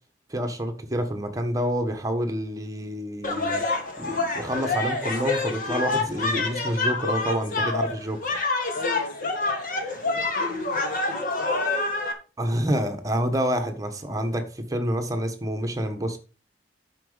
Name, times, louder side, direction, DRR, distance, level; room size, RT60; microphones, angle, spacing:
voice 1, 0.3-3.6 4.0-8.4 12.4-16.2, equal, 20° right, 1.3 m, -28 dB
sound 1, 3.2-12.1, left 3 dB, 50° left, 2.0 m, -27 dB
voice 2, 8.7-11.9, left 1 dB, 75° left, 2.2 m, -39 dB
10.5 x 6.2 x 5.1 m
head